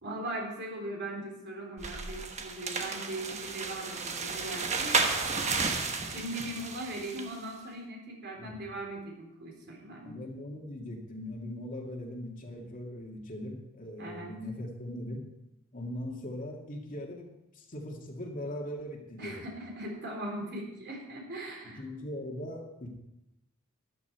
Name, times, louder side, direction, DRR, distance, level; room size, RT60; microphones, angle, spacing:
voice 1, 0.0-5.0 6.0-10.2 14.0-14.3 19.2-21.8, right 1 dB, 55° right, 0 dB, 3.6 m, -39 dB
sound 1, 1.8-7.3, right 4 dB, 35° right, 1.2 m, -32 dB
voice 2, 10.0-15.3 15.7-19.4 21.8-22.9, left 1 dB, 40° left, 0 dB, 2.3 m, -40 dB
13.5 x 11.0 x 4.7 m, 0.88 s
head